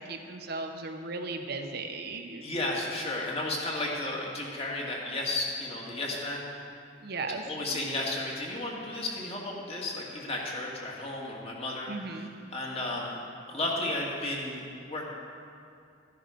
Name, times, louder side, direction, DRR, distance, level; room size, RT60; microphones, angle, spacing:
voice 1, 0.1-2.4 7.0-7.8 11.9-12.3, right 3 dB, 55° right, 5 dB, 0.9 m, -36 dB
voice 2, 2.4-6.4 7.5-11.9 12.5-15.0, left 2 dB, 30° left, -2 dB, 2.1 m, -33 dB
13.5 x 10.5 x 5.2 m, 2.4 s
head